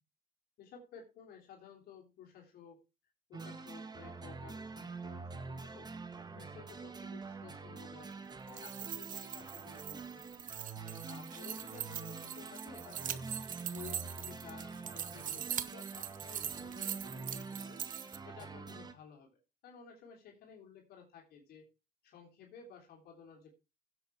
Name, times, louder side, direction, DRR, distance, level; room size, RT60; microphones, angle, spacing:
voice 1, 0.6-2.8 3.3-5.9 6.3-10.3 11.1-13.3 13.6-17.9 18.2-21.7 22.0-23.5, left 6 dB, 70° left, 0 dB, 3.3 m, -55 dB
sound 1, 3.3-18.9, right 4 dB, 25° right, 1.4 m, -46 dB
sound 2, 8.4-18.2, right 10 dB, 50° right, 1.1 m, -42 dB
16.5 x 7.9 x 3.4 m, 0.29 s
cardioid pair, 110°, 17 cm